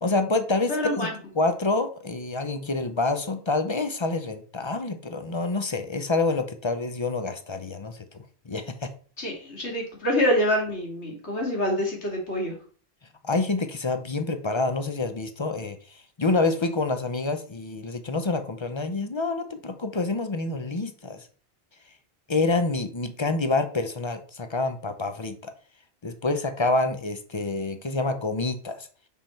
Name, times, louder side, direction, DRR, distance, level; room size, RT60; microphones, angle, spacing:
voice 1, 0.0-8.9 13.2-15.8 16.2-21.2 22.3-25.5 26.0-28.9, left 3 dB, 30° left, 8 dB, 0.6 m, -27 dB
voice 2, 0.7-1.1 9.2-12.5, equal, 85° left, 0 dB, 2.7 m, -26 dB
5.8 x 5.6 x 4.4 m, 0.42 s
omnidirectional pair, 1.1 m